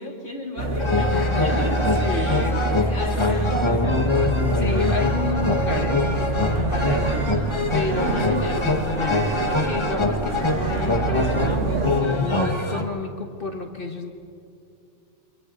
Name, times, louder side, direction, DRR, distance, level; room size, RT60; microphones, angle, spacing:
voice 1, 0.0-1.1 1.4-2.5 2.9-4.2 8.0-8.4, left 1 dB, 55° left, -2 dB, 3.8 m, -36 dB
sound 1, 0.6-11.9, right 2 dB, 55° right, 1.9 m, -26 dB
sound 2, 0.8-12.8, left 2 dB, 20° left, 1.6 m, -24 dB
voice 2, 1.1-3.0 4.5-7.4 7.7-14.1, left 3 dB, 40° left, 4 dB, 1.7 m, -31 dB
29.5 x 25.5 x 4.0 m, 2.6 s
omnidirectional pair, 1.5 m